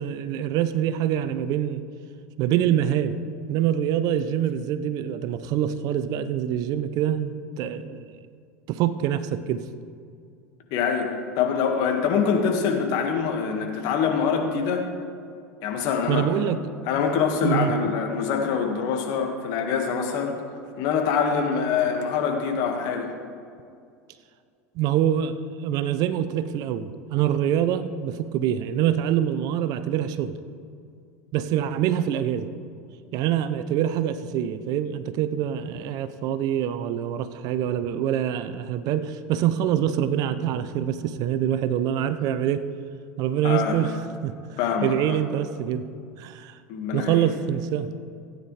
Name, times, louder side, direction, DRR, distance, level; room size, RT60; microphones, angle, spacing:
voice 1, 0.0-1.8 2.4-3.2 3.5-8.2 8.7-9.6 16.1-16.6 17.4-17.7 24.7-30.4 31.3-32.5 33.1-42.6 43.2-44.4 44.8-45.9 46.2-46.6 46.9-47.9, right 10 dB, 50° right, 13 dB, 0.6 m, -25 dB
voice 2, 10.7-11.1 11.4-14.9 15.6-16.3 16.9-20.3 20.8-23.1 43.4-43.8 44.6-45.2 46.7-47.3, left 6 dB, 55° left, 3 dB, 1.8 m, -24 dB
16.5 x 9.4 x 3.3 m, 2.3 s
hypercardioid pair, 85°, 8 cm